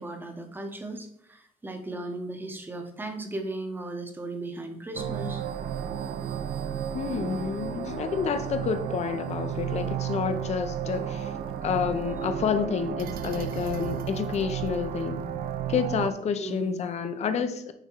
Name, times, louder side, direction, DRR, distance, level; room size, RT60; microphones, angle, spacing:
voice 1, 0.0-5.4 16.4-16.8, right 2 dB, 15° right, 5 dB, 0.9 m, -36 dB
sound 1, 4.9-16.1, right 9 dB, 80° right, 0.5 m, -33 dB
voice 2, 6.9-11.3 11.6-15.2 15.7-17.7, left 6 dB, 50° left, 9 dB, 0.7 m, -29 dB
8.9 x 3.6 x 4.5 m, 0.71 s
cardioid pair, 165°, 15 cm